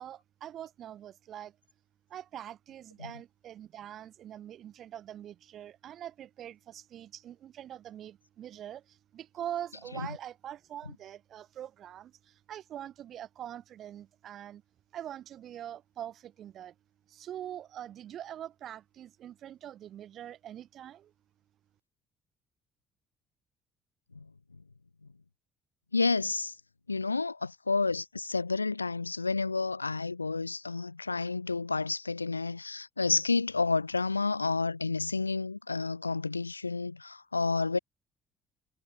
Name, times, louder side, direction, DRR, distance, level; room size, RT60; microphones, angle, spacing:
voice 1, 0.0-1.6 2.1-14.6 14.9-16.7 17.1-21.1, right 11 dB, 50° right, 2.3 m, -43 dB
voice 2, 25.9-26.5 26.9-37.8, left 3 dB, 90° left, 1.1 m, -30 dB
figure-of-eight pair, 50°, 0 cm